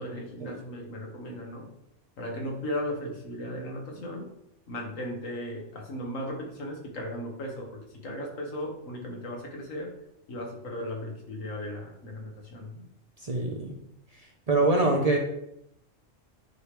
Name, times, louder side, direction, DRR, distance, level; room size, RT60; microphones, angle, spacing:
voice 1, 0.0-1.7 2.2-4.3 4.7-9.9 10.3-12.8 14.6-15.1, left 1 dB, 80° left, 1 dB, 1.6 m, -36 dB
voice 2, 13.2-13.7 14.5-15.2, right 2 dB, 40° right, 1 dB, 0.7 m, -24 dB
9.3 x 3.2 x 3.3 m, 0.78 s
omnidirectional pair, 1.3 m